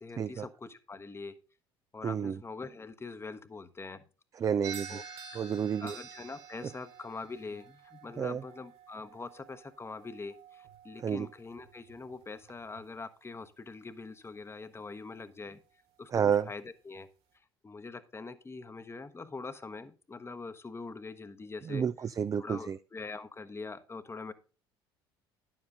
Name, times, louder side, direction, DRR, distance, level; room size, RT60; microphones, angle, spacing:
voice 1, 0.0-1.4 1.9-4.0 4.9-5.0 5.8-15.6 16.0-17.1 17.6-21.9 22.4-24.3, left 3 dB, 20° left, 12 dB, 0.9 m, -43 dB
voice 2, 2.0-2.4 4.4-5.0 5.3-5.9 8.2-8.4 11.0-11.3 16.1-16.5 21.7-22.8, right 7 dB, 25° right, 13 dB, 0.4 m, -30 dB
sound 1, 4.6-13.0, right 7 dB, 50° right, 1.8 m, -49 dB
11.0 x 7.4 x 3.6 m, 0.34 s
figure-of-eight pair, 60°, 13 cm